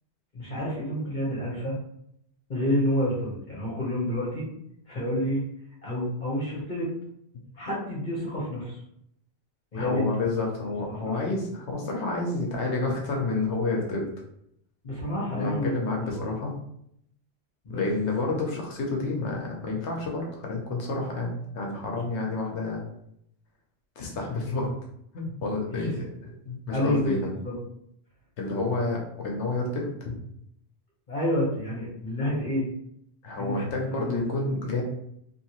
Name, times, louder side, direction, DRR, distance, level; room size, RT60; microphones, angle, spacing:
voice 1, 0.3-1.8 2.5-4.5 4.9-5.4 5.8-6.9 7.5-8.8 9.7-10.3 10.6-11.2 14.8-16.2 17.6-17.8 18.3-18.4 25.7-25.9 26.7-27.5 31.1-32.7 33.4-34.2, left 1 dB, 45° left, -6 dB, 1.1 m, -29 dB
voice 2, 9.7-14.1 15.4-16.5 17.7-22.8 24.0-24.8 25.1-26.1 26.5-27.3 28.4-30.2 33.2-34.8, left 3 dB, 75° left, 0 dB, 1.0 m, -29 dB
2.9 x 2.7 x 2.9 m, 0.74 s
omnidirectional pair, 1.2 m